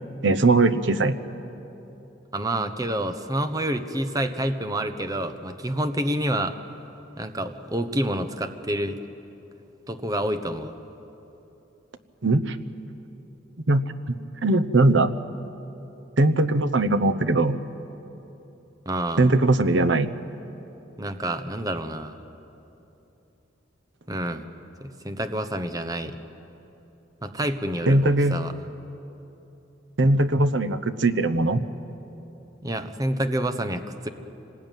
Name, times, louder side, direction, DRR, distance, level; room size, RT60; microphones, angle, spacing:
voice 1, 0.2-1.2 12.2-12.6 13.7-15.1 16.2-17.6 19.2-20.1 27.9-28.4 30.0-31.6, right 2 dB, 70° right, 9 dB, 1.0 m, -20 dB
voice 2, 2.3-6.6 7.2-9.0 9.9-10.7 18.8-19.3 21.0-22.2 24.1-24.5 24.8-26.1 27.2-28.5 32.6-34.1, right 1 dB, 20° right, 8 dB, 1.1 m, -28 dB
25.5 x 19.5 x 9.2 m, 3.0 s
head